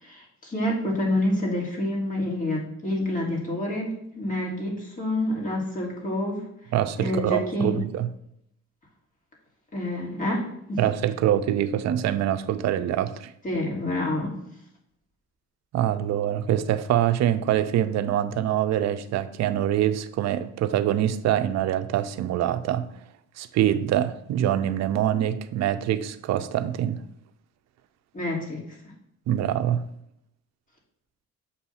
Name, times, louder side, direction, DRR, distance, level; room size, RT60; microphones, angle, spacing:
voice 1, 0.0-6.4 7.0-7.8 9.7-10.8 13.4-14.4 28.1-28.6, left 1 dB, 25° left, 2.1 m, -28 dB
voice 2, 6.7-8.1 10.8-13.3 15.7-22.9 23.4-27.0 29.3-29.8, right 11 dB, 65° right, 0.5 m, -24 dB
7.0 x 2.7 x 5.6 m
cardioid pair, 105°, 30 cm